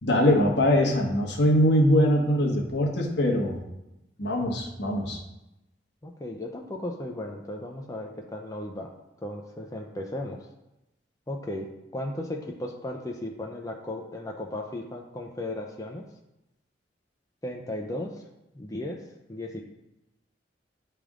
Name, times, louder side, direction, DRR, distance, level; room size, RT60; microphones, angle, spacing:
voice 1, 0.0-3.6 4.2-5.2, left 1 dB, 70° left, 0 dB, 1.2 m, -22 dB
voice 2, 6.0-8.9 9.2-10.5 11.3-16.1 17.4-18.2 18.5-19.0 19.3-19.6, left 1 dB, 20° left, 1 dB, 0.5 m, -35 dB
10.0 x 3.4 x 3.6 m, 0.92 s
head